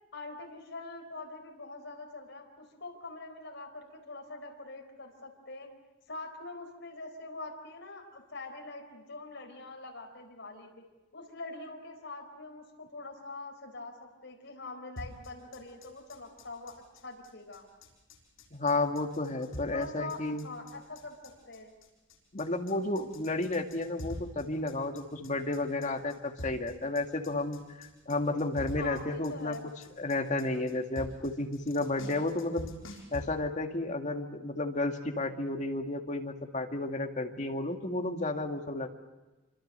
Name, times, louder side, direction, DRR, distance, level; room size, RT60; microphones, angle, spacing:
voice 1, 0.1-5.7 6.1-10.8 11.1-14.0 14.2-17.7 19.7-21.7 28.8-29.6, left 3 dB, 65° left, 2 dB, 4.4 m, -44 dB
sound 1, 15.0-33.2, left 1 dB, 85° left, 6.2 m, -46 dB
voice 2, 18.5-20.4 22.3-29.7 30.0-32.7 33.1-38.9, left 2 dB, 40° left, 3 dB, 2.1 m, -32 dB
27.5 x 25.5 x 6.8 m, 1.1 s
head